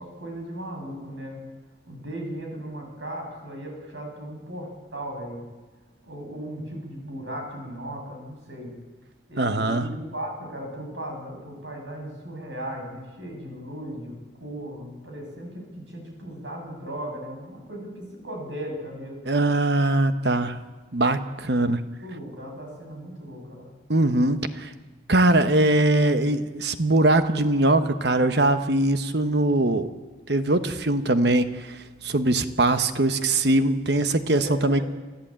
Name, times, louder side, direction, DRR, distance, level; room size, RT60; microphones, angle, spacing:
voice 1, 0.0-1.4 1.9-5.4 6.0-8.7 9.3-14.1 14.4-19.2 22.0-23.7 34.4-34.8, right 1 dB, 80° right, 1 dB, 7.9 m, -37 dB
voice 2, 9.4-9.9 19.3-20.6 20.9-21.8 23.9-24.7 25.1-29.9 30.3-34.8, right 2 dB, 60° right, 10 dB, 1.1 m, -21 dB
28.0 x 14.5 x 8.9 m, 1.3 s
head